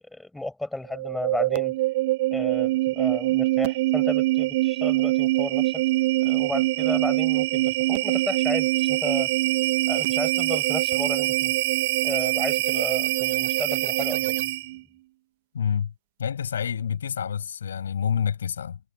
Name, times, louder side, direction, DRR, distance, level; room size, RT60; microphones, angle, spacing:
voice 1, 0.1-1.7 2.3-5.8 6.2-9.3 9.9-11.5 12.0-14.5, left 1 dB, 5° left, 6.5 m, -33 dB
sound 1, 0.9-14.8, right 18 dB, 50° right, 0.5 m, -24 dB
voice 2, 15.5-15.9 16.2-18.8, left 8 dB, 70° left, 7.2 m, -28 dB
figure-of-eight pair, 90°, 0 cm